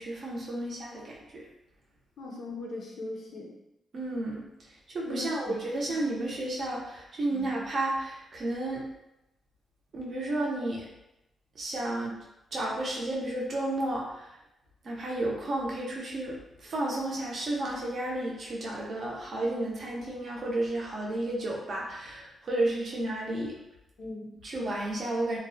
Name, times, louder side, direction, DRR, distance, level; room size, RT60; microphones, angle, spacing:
voice 1, 0.0-1.4 3.9-4.5 4.9-8.9 9.9-10.9 11.6-12.2 12.5-14.3 14.8-23.6 24.4-25.4, right 1 dB, 45° right, -3 dB, 0.5 m, -32 dB
voice 2, 2.2-3.6 5.1-5.6 5.9-6.0 7.3-7.5 24.0-24.3, left 2 dB, 55° left, -1 dB, 0.4 m, -39 dB
2.5 x 2.0 x 2.6 m, 0.86 s
wide cardioid pair, 170°, 0 cm